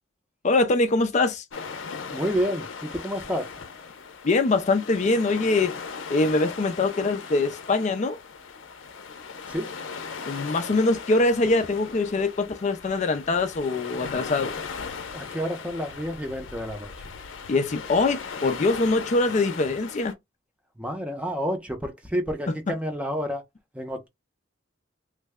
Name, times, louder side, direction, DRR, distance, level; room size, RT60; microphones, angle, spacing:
voice 1, 0.4-1.4 4.2-5.8 6.1-8.2 10.3-14.6 17.5-20.1, left 3 dB, 40° left, 0.4 m, -23 dB
sound 1, 1.5-20.1, left 5 dB, 90° left, 0.6 m, -38 dB
voice 2, 2.1-3.5 9.5-9.7 15.1-17.1 20.8-23.4 23.7-24.1, equal, 5° right, 0.6 m, -29 dB
3.2 x 2.1 x 3.5 m
head